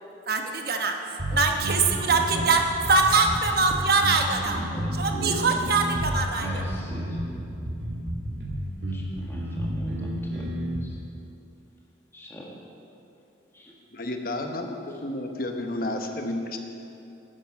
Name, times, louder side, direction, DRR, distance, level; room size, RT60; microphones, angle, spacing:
voice 1, 0.3-1.0 1.3-4.6 5.0-6.6, right 4 dB, 50° right, 3 dB, 1.1 m, -23 dB
sound 1, 1.2-10.8, right 1 dB, 70° right, 2.0 m, -31 dB
voice 2, 4.5-4.9 5.1-5.4 6.3-7.2 8.9-10.5 10.8-11.0 12.1-12.5 13.5-13.7, equal, 15° left, -3 dB, 1.7 m, -42 dB
voice 3, 13.9-16.6, left 1 dB, 45° left, 4 dB, 1.0 m, -31 dB
11.5 x 9.9 x 5.9 m, 2.8 s
head